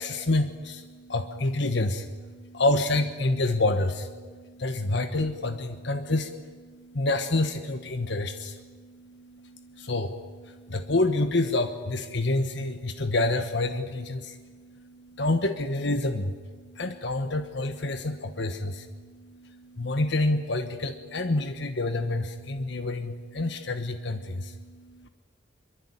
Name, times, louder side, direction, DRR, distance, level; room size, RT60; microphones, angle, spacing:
voice 1, 0.0-25.1, left 2 dB, 60° left, 8 dB, 1.3 m, -28 dB
24.0 x 23.5 x 9.9 m, 1.5 s
head